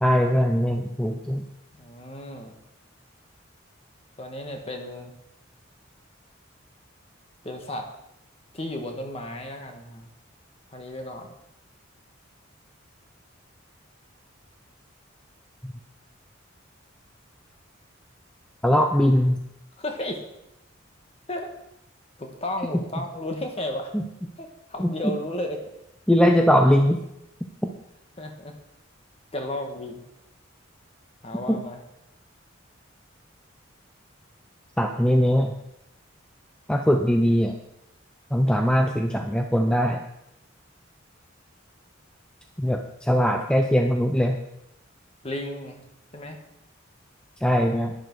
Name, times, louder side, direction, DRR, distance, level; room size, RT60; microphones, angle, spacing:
voice 1, 0.0-1.4 15.6-15.7 18.6-19.4 23.9-24.0 24.8-25.1 26.1-27.0 31.5-31.6 34.8-35.5 36.7-37.6 38.3-40.0 42.6-44.4 47.4-47.9, equal, 5° left, 4 dB, 0.6 m, -21 dB
voice 2, 1.7-2.5 4.2-5.1 7.4-7.9 8.5-10.1 10.7-11.3 19.8-20.2 21.3-21.5 22.2-23.9 24.4-25.6 28.2-28.6 29.3-30.0 31.2-31.8 45.2-45.8 46.1-46.4, left 1 dB, 30° left, 3 dB, 1.6 m, -33 dB
11.0 x 10.5 x 4.7 m, 0.83 s
head